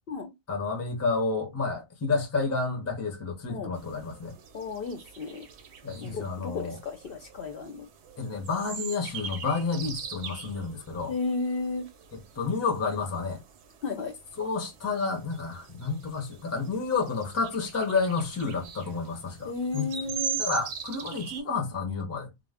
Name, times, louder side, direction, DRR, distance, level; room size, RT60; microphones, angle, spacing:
voice 1, 0.5-4.3 5.8-6.8 8.2-11.1 12.4-13.4 14.4-19.9 20.4-22.3, left 4 dB, 20° left, 0.5 m, -30 dB
sound 1, 3.7-21.4, right 6 dB, 70° right, 0.8 m, -42 dB
voice 2, 4.5-5.5 6.0-7.9 11.1-11.9 13.8-14.1 19.4-20.4, left 3 dB, 60° left, 0.6 m, -33 dB
2.3 x 2.0 x 3.4 m
omnidirectional pair, 1.2 m